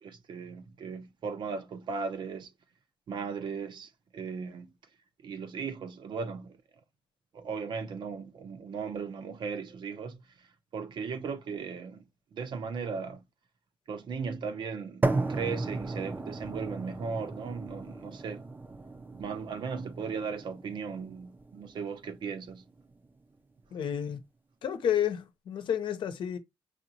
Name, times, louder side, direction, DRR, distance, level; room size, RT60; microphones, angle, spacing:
voice 1, 0.0-2.5 3.1-4.7 5.2-6.6 7.3-10.2 10.7-12.0 12.3-13.2 13.9-18.4 19.1-22.6, right 5 dB, 65° right, 0.7 m, -37 dB
sound 1, 15.0-23.1, right 3 dB, 25° right, 0.5 m, -35 dB
voice 2, 23.7-24.2 24.6-26.4, left 9 dB, 75° left, 0.7 m, -30 dB
5.0 x 2.9 x 2.7 m
cardioid pair, 80°, 8 cm